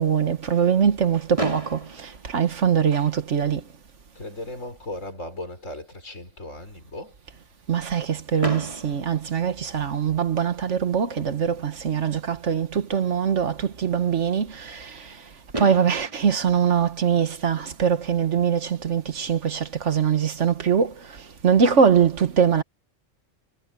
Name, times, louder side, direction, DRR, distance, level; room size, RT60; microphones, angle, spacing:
voice 1, 0.0-3.6 7.7-14.9 15.6-20.9 21.4-22.6, right 7 dB, 70° right, 1.6 m, -22 dB
Fireworks, 1.4-3.4 4.2-4.3 4.5-4.7 5.0-5.1 8.4-10.2 11.9-12.0 15.1-15.2 15.5-17.8, right 1 dB, 25° right, 2.3 m, -35 dB
voice 2, 4.1-7.1, left 1 dB, 80° left, 5.9 m, -37 dB
omnidirectional pair, 1.3 m